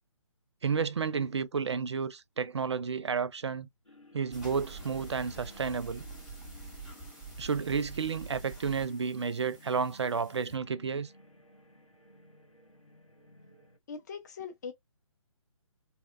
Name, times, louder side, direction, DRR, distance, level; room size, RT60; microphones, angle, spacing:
voice 1, 0.6-3.7 4.1-6.0 7.4-11.1, right 5 dB, 55° right, 0.4 m, -31 dB
sound 1, 3.8-13.8, left 1 dB, 90° left, 1.0 m, -57 dB
sound 2, 4.3-10.6, right 3 dB, 5° right, 0.8 m, -46 dB
voice 2, 13.9-14.7, left 6 dB, 35° left, 0.5 m, -41 dB
2.8 x 2.1 x 2.4 m
figure-of-eight pair, 140°, 17 cm